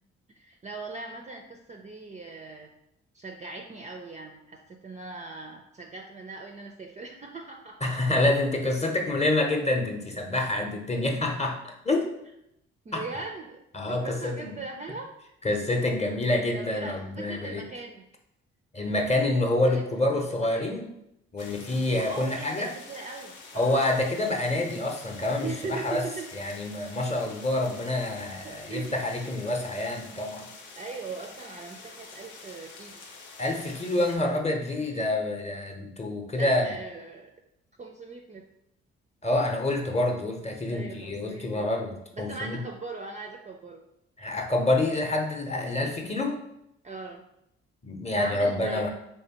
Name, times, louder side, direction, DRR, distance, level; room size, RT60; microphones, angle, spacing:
voice 1, 0.3-2.7 3.1-7.8 11.1-11.3 12.8-13.6 13.9-15.1 16.5-18.0 19.6-19.8 20.1-20.7 21.9-23.8 25.4-26.3 28.4-28.9 30.8-33.0 34.9-35.1 36.4-37.3 37.8-38.4 40.7-41.7 42.2-43.8 46.8-47.2 48.2-48.9, right 4 dB, 25° right, 2 dB, 0.4 m, -40 dB
voice 2, 7.8-12.1 12.9-13.0 13.7-14.6 15.4-17.7 18.7-20.9 21.3-22.7 23.5-26.0 26.3-30.5 33.4-36.8 39.2-42.6 44.2-46.4 47.8-48.9, left 2 dB, 20° left, 2 dB, 0.7 m, -27 dB
sound 1, 21.4-34.2, left 4 dB, 80° left, 0.6 m, -47 dB
3.3 x 3.1 x 2.9 m, 0.81 s
hypercardioid pair, 45°, 32 cm